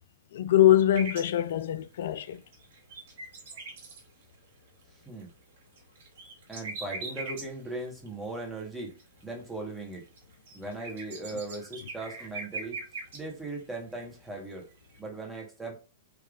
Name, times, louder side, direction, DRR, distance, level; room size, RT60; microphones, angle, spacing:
voice 1, 0.3-2.4, left 12 dB, 65° left, 0.3 m, -23 dB
sound 1, 0.9-15.0, right 3 dB, 60° right, 1.1 m, -42 dB
voice 2, 6.5-9.0 9.2-10.0 10.5-12.8 13.1-14.6 15.0-15.7, right 2 dB, 10° right, 1.3 m, -38 dB
3.5 x 3.1 x 2.5 m
hypercardioid pair, 105°, 0 cm